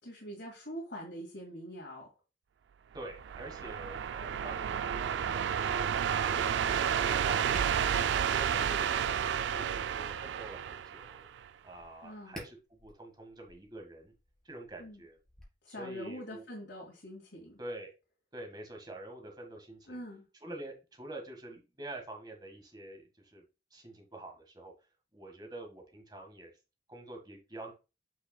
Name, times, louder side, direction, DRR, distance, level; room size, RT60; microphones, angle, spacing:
voice 1, 0.0-2.1 12.0-12.4 14.8-15.0 15.6-17.6 19.9-20.3, equal, 70° left, -2 dB, 2.2 m, -44 dB
voice 2, 2.9-7.8 8.3-11.3 11.6-14.1 14.4-15.2 15.7-16.4 17.6-17.9 18.3-20.0 20.4-23.4 23.7-24.7 25.1-26.5 26.9-27.7, right 1 dB, 25° right, 2 dB, 1.7 m, -47 dB
sound 1, 3.0-11.5, right 8 dB, 80° right, 0.3 m, -31 dB
Tap, 7.5-15.4, equal, 5° left, 3.8 m, -54 dB
8.5 x 5.8 x 2.3 m, 0.29 s
head